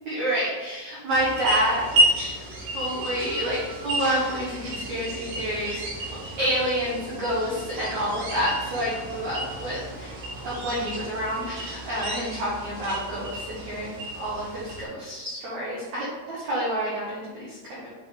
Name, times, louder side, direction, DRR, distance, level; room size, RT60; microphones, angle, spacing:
voice 1, 0.0-2.0 2.7-5.8 6.4-10.1 10.4-17.8, equal, 75° right, -8 dB, 1.6 m, -28 dB
sound 1, 1.1-14.9, right 1 dB, 60° right, 2.4 m, -31 dB
8.6 x 3.5 x 3.8 m, 1.2 s
omnidirectional pair, 5.6 m